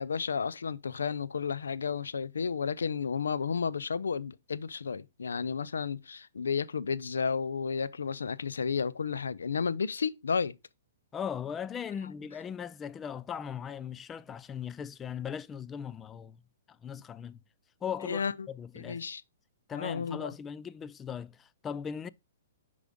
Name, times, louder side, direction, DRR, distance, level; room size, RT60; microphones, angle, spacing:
voice 1, 0.0-10.5 18.0-18.5 18.7-19.2 19.7-20.3, left 6 dB, 85° left, 0.5 m, -32 dB
voice 2, 11.1-16.4 16.8-17.4 17.8-19.0 19.7-22.1, left 7 dB, 20° left, 0.3 m, -38 dB
6.9 x 5.0 x 3.7 m
hypercardioid pair, 130°, 0 cm